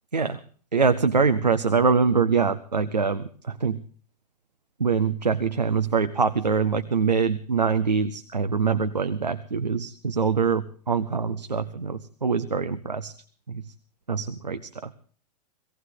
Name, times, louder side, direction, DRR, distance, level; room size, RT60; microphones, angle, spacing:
voice 1, 0.7-3.8 4.8-13.1 13.5-13.6 14.1-14.9, right 5 dB, 90° right, 9 dB, 0.8 m, -24 dB
18.5 x 17.0 x 3.8 m, 0.44 s
figure-of-eight pair, 95°, 21 cm